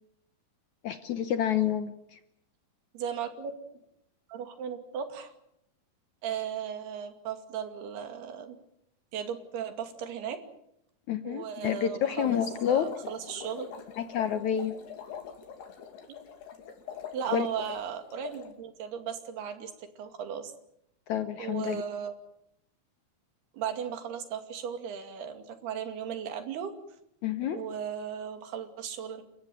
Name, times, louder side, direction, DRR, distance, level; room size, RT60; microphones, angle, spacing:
voice 1, 0.8-2.2 11.1-12.9 14.0-14.8 17.3-17.5 21.1-21.8 27.2-27.6, left 9 dB, 65° left, 10 dB, 1.9 m, -29 dB
voice 2, 2.9-3.5 4.3-5.3 6.2-8.6 9.1-10.4 11.2-12.4 12.7-13.7 17.1-20.5 21.4-22.1 23.5-26.7 27.5-29.2, right 8 dB, 85° right, 8 dB, 4.3 m, -36 dB
sound 1, 12.0-18.5, left 7 dB, 90° left, 4.7 m, -44 dB
29.5 x 15.0 x 9.2 m, 0.79 s
omnidirectional pair, 4.5 m